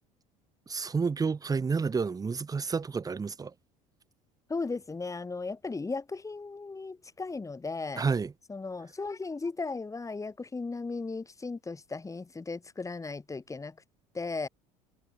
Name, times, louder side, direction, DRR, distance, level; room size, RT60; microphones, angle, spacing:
voice 1, 0.7-3.5 8.0-8.3, right 5 dB, 20° right, 0.8 m, -30 dB
voice 2, 4.5-8.1 8.5-13.7 14.1-14.5, left 3 dB, 15° left, 1.8 m, -36 dB
hypercardioid pair, 70°, 18 cm